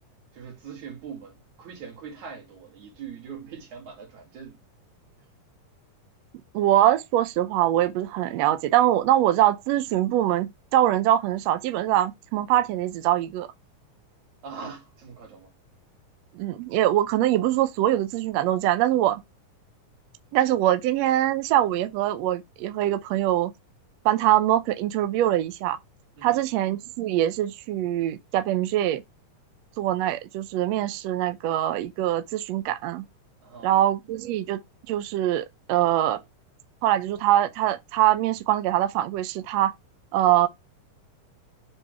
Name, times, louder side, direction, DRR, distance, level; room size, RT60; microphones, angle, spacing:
voice 1, 0.3-4.6 14.4-15.5 26.2-26.5 33.4-33.7, right 6 dB, 60° right, 3.5 m, -42 dB
voice 2, 6.5-13.5 16.3-19.2 20.3-23.5 24.0-25.8 26.2-29.0 29.8-33.0 33.6-34.6 34.9-36.2 36.8-39.7 40.1-40.5, right 13 dB, 80° right, 1.5 m, -23 dB
7.1 x 3.5 x 4.7 m
omnidirectional pair, 3.8 m